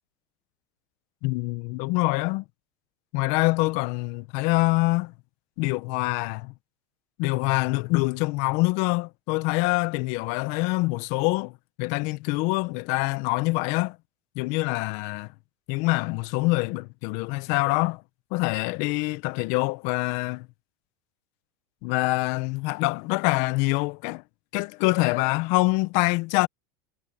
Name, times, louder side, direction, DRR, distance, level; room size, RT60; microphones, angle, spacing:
voice 1, 1.2-2.4 3.1-5.1 5.6-6.5 7.2-11.5 11.8-14.0 14.3-15.3 15.7-18.0 18.3-20.5 21.8-24.2 24.5-26.5, left 24 dB, 60° left, 1.5 m, -25 dB
supercardioid pair, 110°, 13 cm